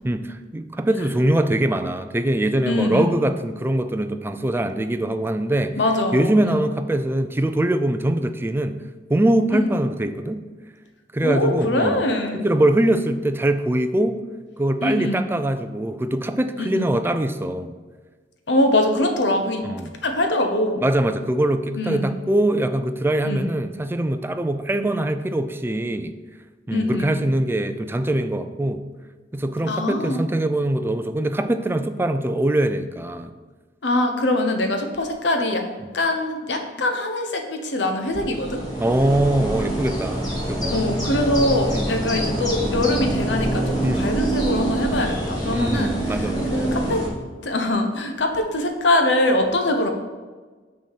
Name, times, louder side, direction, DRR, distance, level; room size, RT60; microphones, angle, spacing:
voice 1, 0.0-5.8 6.1-8.8 9.1-10.4 11.1-12.0 12.3-14.2 14.6-17.7 19.6-19.9 20.8-26.1 26.7-28.8 29.3-33.4 38.8-40.9 41.7-41.9 43.8-44.1 45.5-46.4, right 1 dB, 15° right, 9 dB, 0.4 m, -22 dB
voice 2, 2.7-3.1 5.8-6.6 9.5-9.7 11.2-12.5 14.8-15.3 16.6-16.9 18.5-19.6 20.0-20.9 21.7-22.2 23.2-23.5 26.7-27.3 29.7-30.2 33.8-35.6 35.9-38.6 40.7-47.0 47.4-49.9, left 1 dB, 80° left, 4 dB, 1.0 m, -23 dB
sound 1, 38.1-47.1, right 1 dB, 25° left, 2.4 m, -25 dB
6.2 x 4.3 x 6.4 m, 1.4 s
head